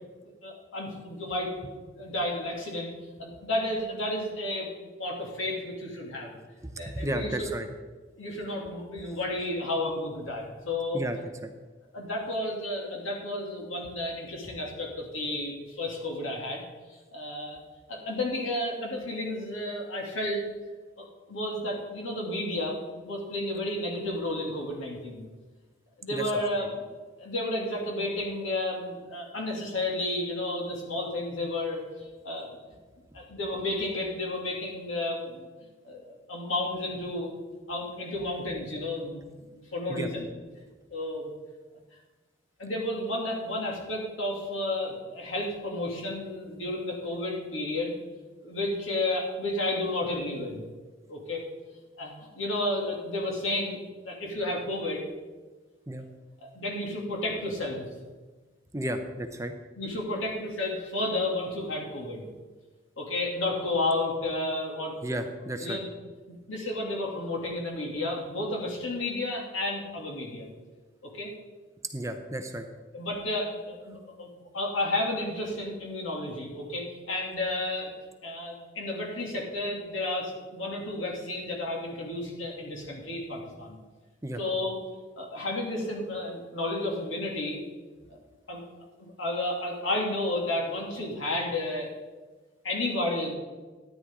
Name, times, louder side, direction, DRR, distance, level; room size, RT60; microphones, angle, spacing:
voice 1, 0.4-2.9 3.2-6.4 6.8-7.5 8.2-11.0 11.9-16.6 17.1-17.6 17.9-20.4 21.0-25.2 26.0-26.8 27.2-32.6 33.1-35.4 35.8-39.2 39.5-40.3 40.9-41.3 42.6-47.9 48.4-50.6 51.1-51.4 52.0-53.8 54.0-55.0 56.4-57.9 59.8-62.3 63.0-65.0 65.6-65.9 66.3-70.5 71.0-71.3 72.9-74.3 74.5-77.9 78.2-83.8 84.4-84.8 85.2-87.6 88.1-88.2 88.5-88.6 89.0-91.9 92.6-93.3, left 1 dB, 90° left, -1 dB, 2.6 m, -32 dB
voice 2, 6.9-7.7 10.9-11.2 11.4-11.5 26.1-26.2 39.9-40.1 55.9-56.1 58.7-59.5 65.0-65.8 71.9-72.7 84.2-84.4, right 1 dB, 15° right, 6 dB, 0.6 m, -32 dB
13.0 x 9.8 x 3.7 m, 1.3 s
head